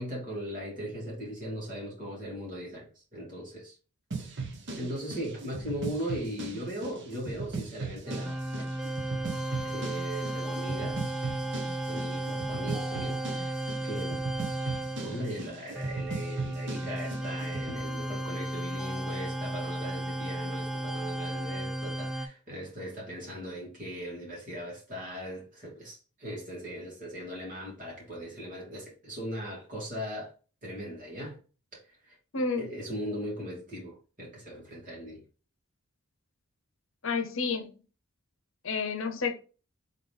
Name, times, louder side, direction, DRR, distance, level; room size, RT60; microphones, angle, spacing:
voice 1, 0.0-3.8 4.3-4.5 4.8-8.4 9.6-11.1 11.9-14.2 15.0-30.3 30.6-31.4 31.9-32.2 32.6-35.2, equal, 40° right, 2.6 m, -39 dB
sound 1, 4.1-17.8, right 3 dB, 55° right, 0.9 m, -39 dB
sound 2, 8.1-22.3, right 1 dB, ahead, 0.3 m, -34 dB
voice 2, 32.3-32.7 37.0-37.7 38.6-39.3, left 4 dB, 65° left, 0.8 m, -30 dB
4.0 x 3.8 x 3.4 m
head